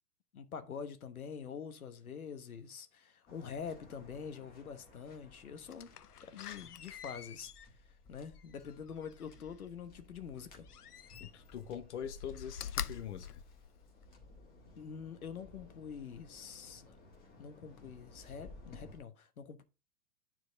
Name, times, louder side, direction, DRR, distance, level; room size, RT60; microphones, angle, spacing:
voice 1, 0.3-5.9 6.2-7.5 8.1-10.7 14.8-16.9 17.4-19.6, left 6 dB, 70° left, 1.2 m, -45 dB
Waves surf, 3.3-19.0, left 2 dB, 20° left, 1.9 m, -58 dB
Slam, 5.7-9.5 10.7-11.6 12.0-14.2 14.7-14.8, left 9 dB, 85° left, 0.6 m, -46 dB
voice 2, 11.2-13.4, left 8 dB, 50° left, 1.0 m, -43 dB
9.6 x 4.7 x 3.8 m
figure-of-eight pair, 120°, 45 cm